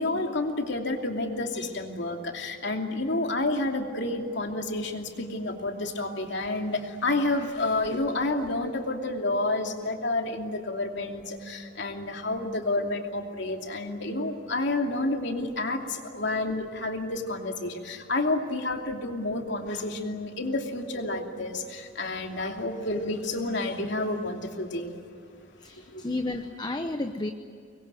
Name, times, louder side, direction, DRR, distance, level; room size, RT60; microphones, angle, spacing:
voice 1, 0.0-24.9 25.9-26.0, left 2 dB, 65° left, 3 dB, 2.8 m, -30 dB
voice 2, 25.6-27.3, left 2 dB, 20° left, 7 dB, 0.9 m, -32 dB
25.5 x 21.5 x 9.2 m, 2.4 s
head